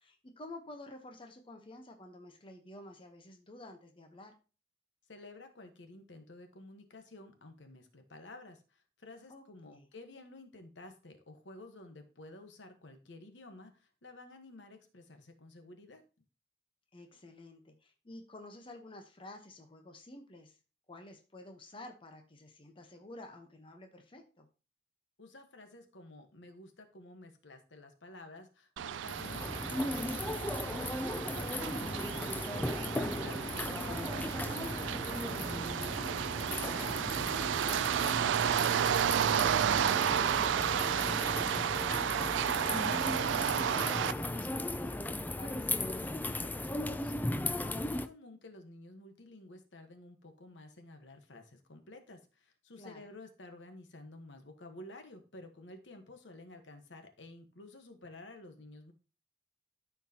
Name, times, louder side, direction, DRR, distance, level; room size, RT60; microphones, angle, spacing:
voice 1, 0.0-4.3 9.3-9.9 16.9-20.6 20.9-24.5 37.1-42.8 43.1-47.1 52.8-53.0, left 1 dB, 30° left, 4 dB, 0.9 m, -51 dB
voice 2, 5.1-16.0 25.2-30.8 31.3-36.3 47.8-58.9, left 2 dB, 75° left, 6 dB, 1.2 m, -52 dB
sound 1, 28.8-44.1, right 9 dB, 85° right, 0.3 m, -32 dB
sound 2, 29.0-48.1, left 2 dB, 10° left, 0.3 m, -37 dB
13.0 x 4.6 x 2.8 m, 0.34 s
head